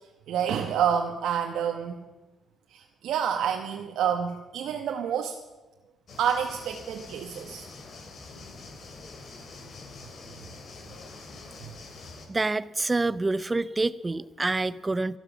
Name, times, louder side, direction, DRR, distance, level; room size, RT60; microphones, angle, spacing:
voice 1, 0.3-2.0 2.7-5.3 6.2-7.6 11.6-11.7, right 8 dB, 80° right, 4 dB, 1.1 m, -28 dB
sound 1, 6.1-12.3, left 3 dB, 55° left, 2.8 m, -45 dB
voice 2, 12.3-15.2, right 2 dB, 20° right, 17 dB, 0.6 m, -27 dB
12.5 x 12.0 x 7.3 m, 1.1 s
cardioid pair, 90°, 0 cm